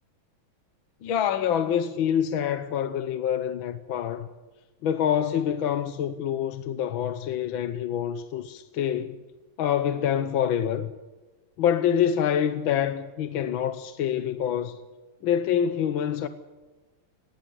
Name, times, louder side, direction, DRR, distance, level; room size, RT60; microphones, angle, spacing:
voice 1, 1.0-4.3 4.8-9.2 9.6-10.9 11.6-14.8 15.2-16.3, left 9 dB, 70° left, 1.7 m, -26 dB
19.0 x 18.0 x 8.2 m
omnidirectional pair, 2.3 m